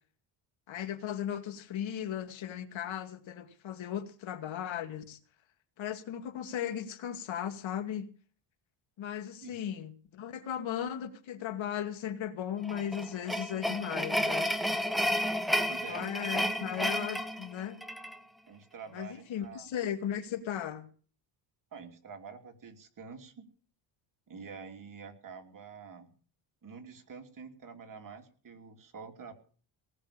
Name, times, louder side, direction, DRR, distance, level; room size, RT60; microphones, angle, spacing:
voice 1, 0.7-5.2 5.8-8.1 9.0-14.5 15.5-17.8 18.9-20.9, left 9 dB, 65° left, 2.4 m, -37 dB
sound 1, 12.6-18.2, equal, ahead, 1.5 m, -31 dB
voice 2, 15.7-16.0 18.5-19.7 21.7-23.5 24.3-26.1 26.6-29.3, right 5 dB, 40° right, 3.1 m, -47 dB
19.0 x 6.5 x 8.7 m
cardioid pair, 115°, 49 cm